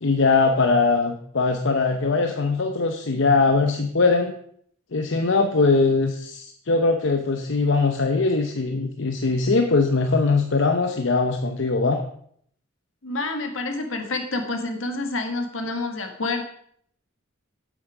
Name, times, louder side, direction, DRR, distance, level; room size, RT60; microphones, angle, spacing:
voice 1, 0.0-4.3 4.9-12.0, left 3 dB, 65° left, 5 dB, 0.8 m, -21 dB
voice 2, 13.0-16.4, left 2 dB, 80° left, 5 dB, 1.7 m, -28 dB
8.9 x 8.5 x 4.9 m, 0.64 s
head